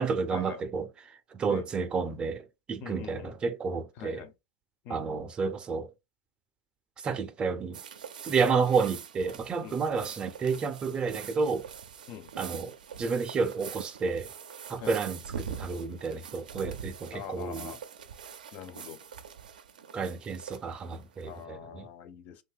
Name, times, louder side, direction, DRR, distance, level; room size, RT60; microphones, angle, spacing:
voice 1, 0.0-4.2 4.9-5.9 7.0-7.8 8.2-11.6 12.4-14.3 14.7-17.7 19.9-21.9, right 5 dB, 20° right, 0.4 m, -31 dB
voice 2, 2.8-3.3 4.0-4.3 4.9-5.0 9.6-10.1 12.1-12.3 14.8-15.0 17.1-17.8 18.5-19.0 21.3-22.4, left 8 dB, 40° left, 0.4 m, -43 dB
sound 1, 7.7-21.4, right 7 dB, 80° right, 0.4 m, -44 dB
2.6 x 2.2 x 3.4 m
hypercardioid pair, 110°, 4 cm